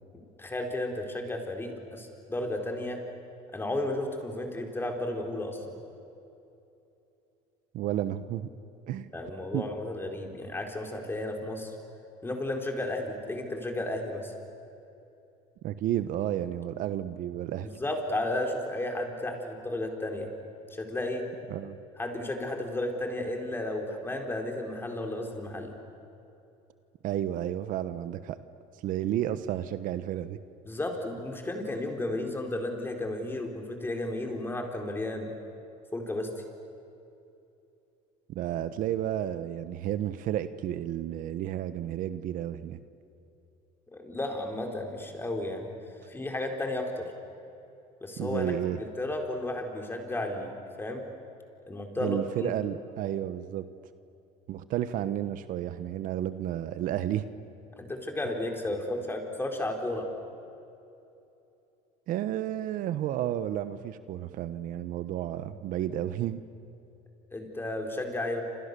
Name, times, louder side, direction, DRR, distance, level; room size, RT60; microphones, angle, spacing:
voice 1, 0.4-3.0 3.5-5.6 9.1-11.7 12.2-14.3 17.6-20.3 20.7-21.2 22.0-25.7 30.6-35.3 35.9-36.3 43.9-45.7 46.1-47.1 48.0-50.5 50.8-51.0 51.7-52.5 57.8-60.1 67.3-68.4, left 1 dB, 15° left, 3 dB, 4.4 m, -33 dB
voice 2, 7.7-8.5 8.9-9.1 9.5-9.6 15.6-17.7 21.5-21.8 27.0-28.4 28.8-30.4 38.3-42.8 48.2-48.8 52.0-53.6 54.5-57.2 62.1-66.4, right 12 dB, 65° right, 12 dB, 1.1 m, -32 dB
29.0 x 27.5 x 6.9 m, 2.8 s
cardioid pair, 115°, 15 cm